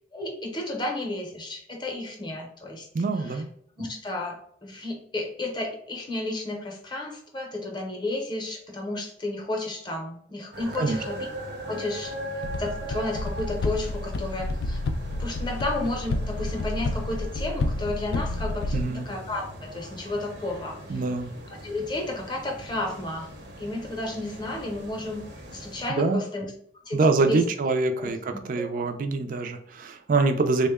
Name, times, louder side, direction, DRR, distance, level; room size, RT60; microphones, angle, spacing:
voice 1, 0.1-2.9 3.8-11.2 11.7-12.1 12.6-14.8 15.2-20.8 21.6-23.3 23.6-25.2 25.5-26.5 26.8-27.0 27.3-27.4 28.0-28.9, left 2 dB, 25° left, 2 dB, 0.6 m, -32 dB
voice 2, 2.9-3.5 10.8-11.0 18.7-19.1 20.9-21.3 25.9-26.3 26.9-30.7, right 3 dB, 50° right, 7 dB, 0.4 m, -25 dB
sound 1, 10.5-25.9, right 1 dB, 70° right, 0.7 m, -40 dB
sound 2, 12.4-18.8, left 2 dB, 60° left, 0.3 m, -30 dB
3.6 x 2.1 x 3.4 m, 0.66 s
head